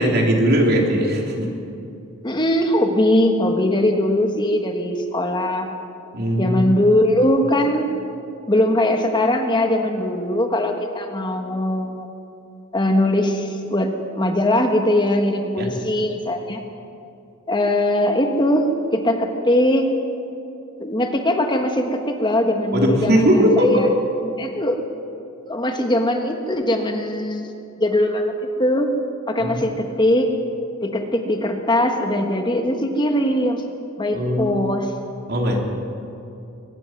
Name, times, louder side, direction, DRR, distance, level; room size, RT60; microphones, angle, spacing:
voice 1, 0.0-1.5 6.1-6.8 15.6-15.7 22.7-23.8 29.4-29.6 34.1-34.7 35.3-35.7, equal, 50° right, 1 dB, 3.5 m, -19 dB
voice 2, 2.2-5.7 6.4-7.9 8.5-12.1 12.7-16.6 17.5-19.9 20.8-23.9 24.4-24.8 25.4-27.5 27.8-28.3 28.6-28.9 29.3-30.3 30.8-33.6 34.0-34.9, left 1 dB, 20° left, 4 dB, 1.4 m, -20 dB
23.0 x 20.0 x 6.1 m, 2.6 s
head